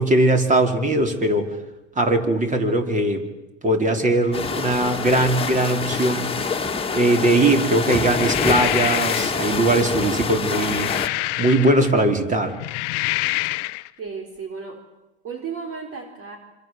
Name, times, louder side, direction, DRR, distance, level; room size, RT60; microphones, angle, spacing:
voice 1, 0.0-1.5 2.0-3.2 3.6-6.4 6.9-10.9 11.4-12.5, right 1 dB, 20° right, 5 dB, 4.8 m, -20 dB
sound 1, 4.3-11.1, left 5 dB, 15° left, 2.7 m, -26 dB
sound 2, 8.0-9.4 10.3-12.0 12.5-13.9, left 22 dB, 60° left, 1.1 m, -27 dB
voice 2, 14.0-14.8 15.2-16.4, right 5 dB, 40° right, 3 dB, 4.5 m, -33 dB
27.0 x 26.5 x 7.9 m, 0.99 s
hypercardioid pair, 95°, 35 cm